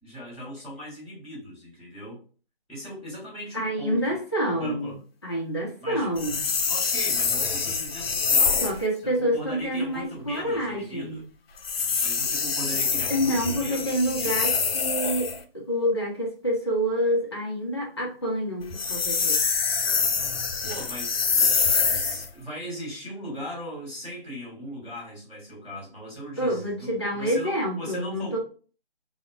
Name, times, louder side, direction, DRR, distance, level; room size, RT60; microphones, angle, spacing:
voice 1, 0.0-2.2 2.7-4.2 4.5-5.0 5.8-6.1 6.7-8.8 9.0-11.2 12.0-14.4 20.6-21.6 21.9-28.4, equal, ahead, -19 dB, 1.0 m, -38 dB
voice 2, 3.5-4.9 5.2-6.5 8.6-11.2 13.1-19.4 26.4-28.4, equal, 25° left, -3 dB, 0.6 m, -27 dB
sound 1, 6.2-8.8 11.6-15.4 18.6-22.3, left 5 dB, 70° left, 0.5 m, -25 dB
2.8 x 2.1 x 2.4 m, 0.38 s
figure-of-eight pair, 170°, 31 cm